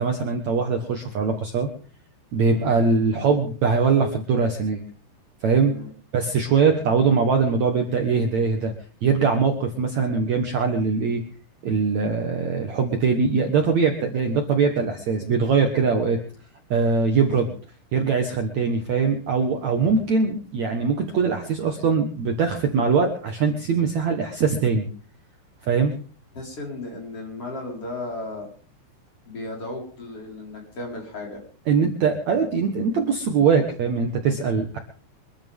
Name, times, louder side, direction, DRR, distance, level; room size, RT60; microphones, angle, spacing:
voice 1, 0.0-1.7 2.3-4.8 5.4-5.7 6.1-8.7 9.0-11.2 11.6-16.2 16.7-17.5 17.9-24.9 25.6-25.9 31.7-34.8, right 5 dB, 80° right, 3 dB, 1.6 m, -22 dB
voice 2, 5.6-5.9 26.3-28.5 29.3-31.4 34.4-34.5, left 2 dB, 30° left, -1 dB, 5.4 m, -35 dB
24.5 x 13.5 x 3.7 m, 0.41 s
omnidirectional pair, 5.6 m